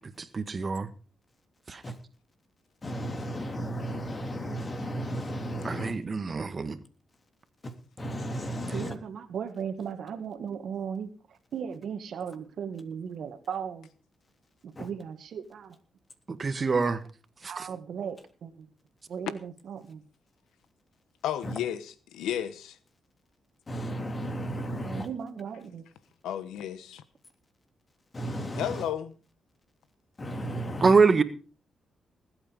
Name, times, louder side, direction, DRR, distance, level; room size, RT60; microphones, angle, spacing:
voice 1, 0.3-0.9 1.7-1.8 5.6-6.8 16.3-17.0 30.8-31.2, right 4 dB, 40° right, 1.7 m, -24 dB
voice 2, 2.8-6.0 7.6-8.9 14.7-14.9 21.4-21.5 23.7-25.1 28.1-28.9 30.2-30.9, right 1 dB, 35° left, 3.2 m, -34 dB
voice 3, 8.7-13.9 14.6-15.8 17.5-18.7 19.1-20.0 24.8-25.8, right 7 dB, 70° right, 2.0 m, -37 dB
voice 4, 21.2-21.8 22.1-22.8 26.2-27.0 28.5-29.1, left 10 dB, 90° left, 1.1 m, -32 dB
20.0 x 8.7 x 5.3 m
supercardioid pair, 60°, 0 cm